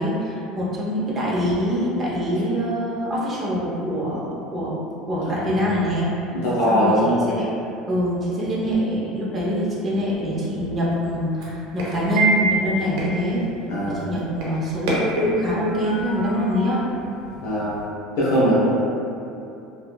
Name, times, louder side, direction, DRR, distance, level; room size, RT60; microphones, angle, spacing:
voice 1, 0.0-6.1 6.7-7.6 7.9-13.4 13.9-16.8, equal, 25° right, -7 dB, 0.6 m, -24 dB
voice 2, 6.4-7.1 13.7-14.0 17.4-17.7 18.2-18.7, equal, 85° left, -9 dB, 0.7 m, -20 dB
sound 1, 10.0-17.9, right 2 dB, 80° right, 0.6 m, -28 dB
2.8 x 2.2 x 2.2 m, 2.7 s
supercardioid pair, 125°, 0 cm